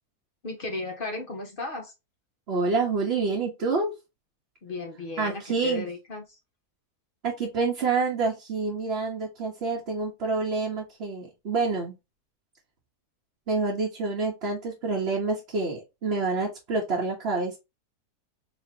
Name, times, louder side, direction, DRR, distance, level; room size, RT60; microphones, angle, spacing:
voice 1, 0.4-1.9 4.6-6.2, left 2 dB, 40° left, 1.0 m, -35 dB
voice 2, 2.5-3.9 5.2-5.9 7.2-11.9 13.5-17.6, right 4 dB, 45° right, 1.1 m, -27 dB
4.2 x 3.1 x 2.7 m
omnidirectional pair, 1.7 m